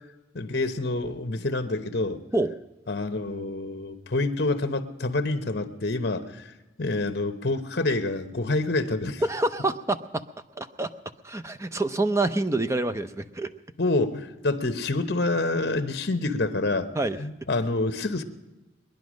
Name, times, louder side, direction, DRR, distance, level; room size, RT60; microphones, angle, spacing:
voice 1, 0.3-2.2 2.9-6.5 6.8-9.2 13.8-16.9 17.2-18.2, left 2 dB, 60° left, 9 dB, 1.1 m, -27 dB
voice 2, 9.2-10.2 10.6-10.9 11.2-13.5 16.9-17.2, right 2 dB, 15° right, 11 dB, 0.6 m, -26 dB
22.0 x 10.5 x 6.3 m, 1.1 s
head